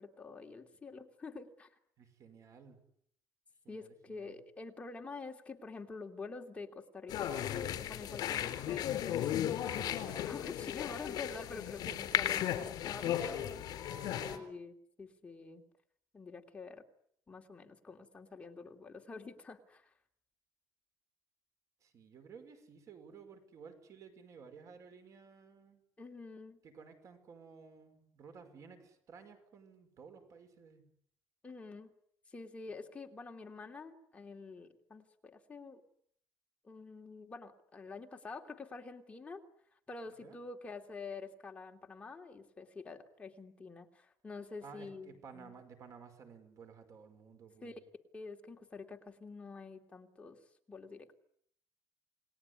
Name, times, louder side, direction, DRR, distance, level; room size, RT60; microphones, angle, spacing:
voice 1, 0.0-1.7 3.7-13.4 14.2-15.6 16.1-16.8 17.3-19.9 26.0-26.6 31.4-31.9 32.3-35.8 36.6-39.4 39.9-45.5 47.6-47.8 48.1-50.4 50.7-51.1, left 4 dB, 15° left, 3 dB, 2.9 m, -47 dB
voice 2, 2.0-2.8 3.6-4.4 11.9-12.2 13.0-13.7 14.0-14.4 21.8-25.8 26.6-30.9 40.1-40.4 44.6-47.7, right 5 dB, 50° right, 8 dB, 5.7 m, -55 dB
sound 1, 7.1-14.4, left 11 dB, 70° left, 3.7 m, -35 dB
29.5 x 20.5 x 9.8 m, 0.69 s
cardioid pair, 165°, 7 cm